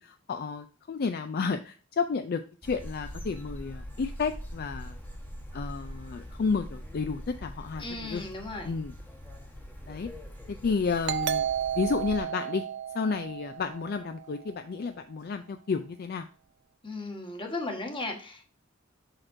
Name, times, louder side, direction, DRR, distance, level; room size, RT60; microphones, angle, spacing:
voice 1, 0.0-5.0 5.5-8.2 8.6-8.9 9.9-10.1 10.5-11.5 11.7-12.6 12.9-16.3, left 5 dB, 50° left, 8 dB, 0.4 m, -31 dB
sound 1, 2.6-12.2, equal, 10° left, 1.1 m, -43 dB
voice 2, 7.8-8.7 16.8-18.4, left 2 dB, 25° left, 2 dB, 1.3 m, -36 dB
Doorbell, 11.1-14.4, right 9 dB, 60° right, 0.4 m, -32 dB
6.4 x 6.0 x 2.6 m, 0.38 s
head